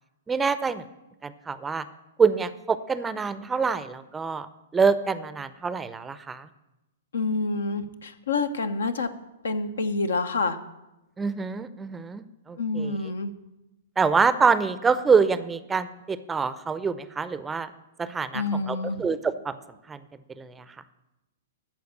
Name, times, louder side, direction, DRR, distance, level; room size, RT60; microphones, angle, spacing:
voice 1, 0.3-0.9 1.2-1.8 2.2-4.5 4.7-6.5 11.2-13.0 14.0-17.7 18.0-19.6 19.9-20.0 20.4-20.6, right 5 dB, 15° right, 13 dB, 0.5 m, -25 dB
voice 2, 7.1-9.1 9.4-10.6 12.6-13.3 18.3-19.1, left 3 dB, 75° left, 10 dB, 0.8 m, -27 dB
13.5 x 4.6 x 8.1 m, 0.98 s
hypercardioid pair, 115°, 0 cm